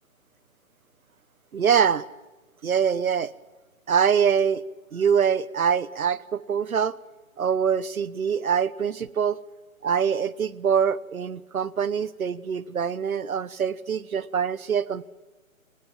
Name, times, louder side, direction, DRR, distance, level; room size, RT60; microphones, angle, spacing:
voice 1, 1.5-2.1 2.6-3.3 3.9-4.6 4.9-7.0 7.4-9.4 9.8-15.1, right 7 dB, 80° right, 19 dB, 1.1 m, -24 dB
23.0 x 19.0 x 7.6 m, 1.2 s
hypercardioid pair, 150°, 42 cm